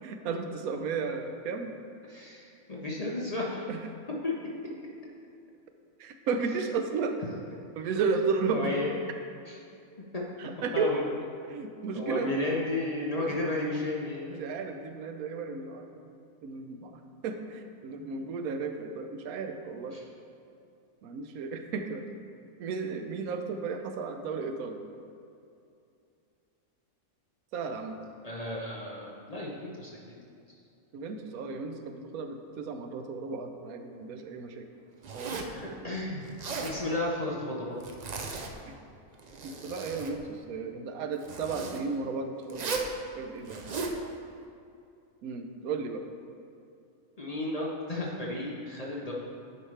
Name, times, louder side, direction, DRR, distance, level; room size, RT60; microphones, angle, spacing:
voice 1, 0.0-1.7 3.7-3.8 6.0-7.2 7.8-8.7 10.4-10.9 11.5-12.5 13.2-13.4 14.3-16.1 16.4-20.0 21.0-22.0 22.6-24.8 27.5-28.0 30.9-34.7 35.1-35.4 38.6-38.7 39.4-42.8 43.2-43.6 45.2-46.0, right 5 dB, 85° right, 6 dB, 1.1 m, -34 dB
voice 2, 2.1-3.7 4.2-4.4 8.5-8.9 9.5-9.6 10.1-10.2 10.7-11.1 11.9-14.4 19.9-20.0 28.2-30.2 35.5-36.2 36.6-37.8 47.2-49.1, left 2 dB, 35° left, -4 dB, 0.7 m, -33 dB
Zipper (clothing), 35.0-35.6 36.2-36.8 37.8-38.5 39.1-40.1 41.2-41.8 42.5-42.9 43.4-44.0, right 4 dB, 70° right, 0.4 m, -36 dB
9.5 x 5.1 x 3.2 m, 2.5 s
omnidirectional pair, 1.5 m